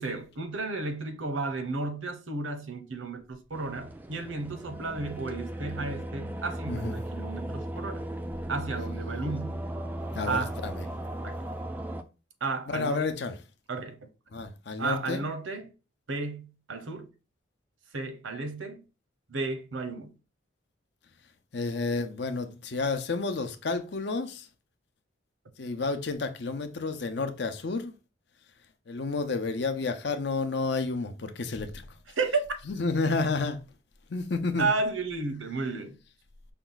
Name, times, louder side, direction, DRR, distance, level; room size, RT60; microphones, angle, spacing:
voice 1, 0.0-8.0 8.5-9.6 10.3-10.6 11.2-11.4 12.4-13.1 13.7-14.1 14.8-15.7 16.1-17.1 17.9-18.8 19.3-20.1 32.2-32.4 34.6-36.0, right 3 dB, 80° right, 0.8 m, -33 dB
sound 1, 3.5-12.0, right 1 dB, 10° right, 0.3 m, -36 dB
voice 2, 10.1-10.8 12.7-13.3 14.3-15.2 21.5-24.4 25.6-27.9 28.9-31.7 32.7-33.6 34.1-34.7, left 3 dB, 60° left, 0.6 m, -30 dB
5.3 x 2.3 x 3.8 m
head